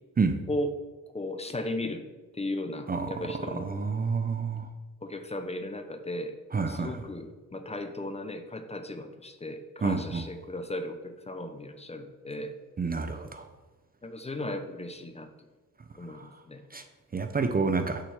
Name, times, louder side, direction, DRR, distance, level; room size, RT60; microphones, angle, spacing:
voice 1, 1.1-2.0 2.3-3.7 5.0-12.5 14.0-15.3 16.0-16.6, left 1 dB, 20° left, 7 dB, 0.8 m, -36 dB
voice 2, 3.5-4.7 6.5-7.0 9.8-10.2 12.8-13.5 16.1-16.3 16.7-16.8 17.1-18.0, right 4 dB, 25° right, 6 dB, 0.6 m, -29 dB
6.8 x 6.0 x 7.2 m, 1.2 s
cardioid pair, 125°, 33 cm